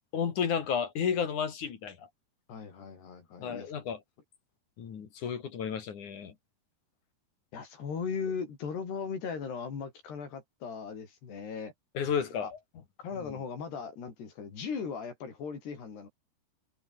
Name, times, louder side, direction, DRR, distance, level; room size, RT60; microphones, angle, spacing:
voice 1, 0.1-2.1 3.4-4.0 4.8-6.3 12.0-12.6 13.2-13.3, left 7 dB, 50° left, 3.4 m, -32 dB
voice 2, 2.5-3.7 7.5-11.7 12.4-12.5 13.0-16.1, left 6 dB, 65° left, 7.0 m, -38 dB
omnidirectional pair, 5.2 m